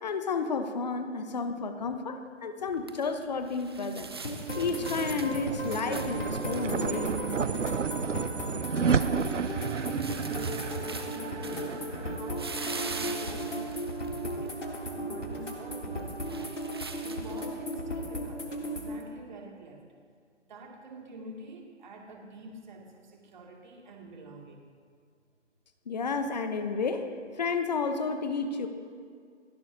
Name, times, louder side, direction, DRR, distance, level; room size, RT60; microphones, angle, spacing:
voice 1, 0.0-4.1 4.5-7.2 25.9-28.7, left 4 dB, 35° left, 8 dB, 1.1 m, -31 dB
sound 1, 2.6-17.8, right 4 dB, 20° right, 0.6 m, -44 dB
sound 2, 3.9-14.4, right 6 dB, 90° right, 0.8 m, -33 dB
sound 3, 4.2-19.0, equal, 85° left, 3.0 m, -36 dB
voice 2, 8.0-9.3 9.8-13.9 14.4-16.6 17.0-19.8 20.5-24.6, right 2 dB, 40° right, -1 dB, 2.6 m, -47 dB
29.5 x 11.5 x 2.9 m, 2.1 s
figure-of-eight pair, 155°, 36 cm